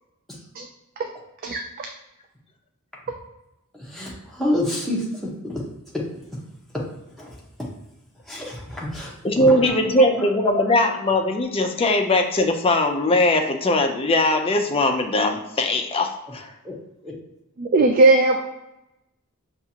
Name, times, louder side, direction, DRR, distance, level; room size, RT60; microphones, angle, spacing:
voice 1, 3.8-5.6 5.9-6.0 6.7-6.8 7.2-7.3 7.6-7.7 8.3-10.3 16.6-16.7 17.0-17.1, left 1 dB, ahead, -5 dB, 0.9 m, -28 dB
voice 2, 9.2-16.5, left 1 dB, 25° left, 4 dB, 0.4 m, -20 dB
voice 3, 17.6-18.4, right 2 dB, 40° right, 3 dB, 0.3 m, -16 dB
5.7 x 2.4 x 2.8 m, 0.93 s
head